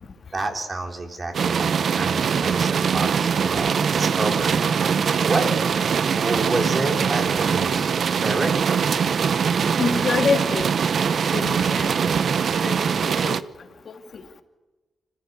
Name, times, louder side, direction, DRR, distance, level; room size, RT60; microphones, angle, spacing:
voice 1, 0.3-5.5 6.1-7.9 8.2-8.9, right 2 dB, 35° right, 4 dB, 3.9 m, -29 dB
sound 1, 1.3-13.4, right 6 dB, 60° right, 0.8 m, -22 dB
voice 2, 9.8-10.7 11.3-11.9 12.6-13.4 13.9-14.0, left 5 dB, 55° left, 6 dB, 2.5 m, -26 dB
25.5 x 15.5 x 9.8 m, 1.2 s
cardioid pair, 85°, 0 cm